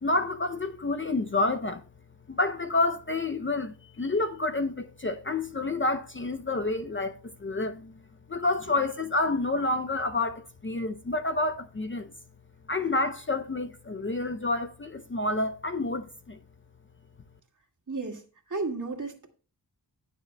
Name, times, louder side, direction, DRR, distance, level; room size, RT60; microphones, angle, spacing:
voice 1, 0.0-1.8 2.3-7.9 8.3-12.1 12.7-16.4, left 2 dB, 30° left, 0.6 m, -29 dB
voice 2, 17.9-18.2 18.5-19.3, right 3 dB, 45° right, 2.1 m, -33 dB
19.5 x 6.6 x 2.2 m
wide cardioid pair, 80°, 42 cm